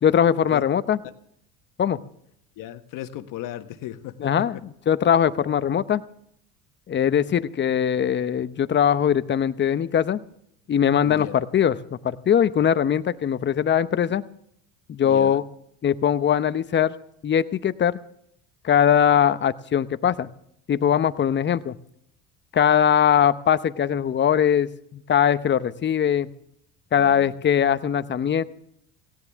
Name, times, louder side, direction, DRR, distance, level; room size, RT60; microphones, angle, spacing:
voice 1, 0.0-1.0 1.8-2.0 4.2-4.6 4.9-6.0 6.9-10.2 10.7-11.8 12.0-14.2 14.9-15.4 15.8-16.9 17.2-18.0 18.6-20.3 20.7-21.7 22.5-26.3 26.9-28.4, left 9 dB, 30° left, 13 dB, 0.8 m, -21 dB
voice 2, 2.6-4.6 11.0-11.4 15.0-15.4 26.9-27.5, left 13 dB, 60° left, 8 dB, 1.4 m, -36 dB
17.5 x 17.5 x 3.6 m, 0.73 s
supercardioid pair, 95°, 37 cm